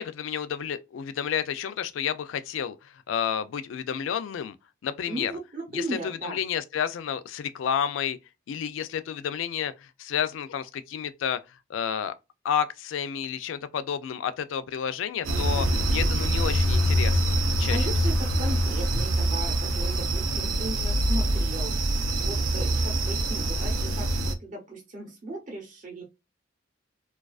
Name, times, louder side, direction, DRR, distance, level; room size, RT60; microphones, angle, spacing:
voice 1, 0.0-2.8 3.1-4.6 4.8-5.3 5.7-8.2 8.5-9.7 10.0-11.4 11.7-12.1 12.4-17.9, left 8 dB, 80° left, 0.3 m, -30 dB
voice 2, 5.1-6.4 17.7-26.0, right 1 dB, 40° right, 0.7 m, -37 dB
sound 1, 15.2-24.3, right 1 dB, 90° right, 0.5 m, -25 dB
2.3 x 2.3 x 2.3 m
head